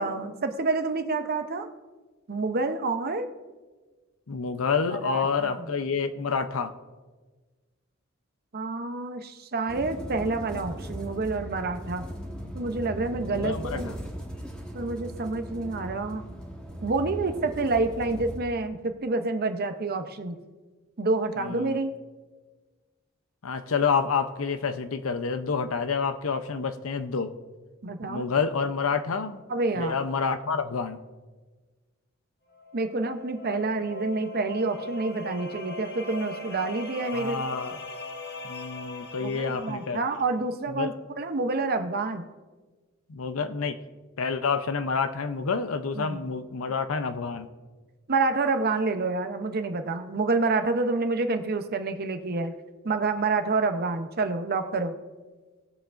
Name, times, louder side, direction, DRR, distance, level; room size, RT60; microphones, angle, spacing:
voice 1, 0.0-1.7 2.3-3.3 5.0-5.6 8.5-12.1 12.5-13.9 14.7-16.2 16.8-20.4 21.0-21.9 27.8-28.3 29.5-30.0 32.7-37.4 39.2-42.2 45.9-46.2 48.1-52.5 52.8-54.9, right 3 dB, 50° right, 8 dB, 0.7 m, -28 dB
voice 2, 4.3-6.7 13.3-13.9 21.4-21.8 23.4-27.3 28.1-29.4 29.8-31.0 37.1-37.8 38.4-40.0 40.7-40.9 43.1-43.8 44.2-47.5, left 5 dB, 80° left, 10 dB, 0.7 m, -28 dB
sound 1, 9.7-18.4, equal, 5° left, 1.2 m, -38 dB
sound 2, 32.5-40.3, left 2 dB, 50° left, 1.1 m, -39 dB
19.0 x 7.1 x 2.5 m, 1.3 s
head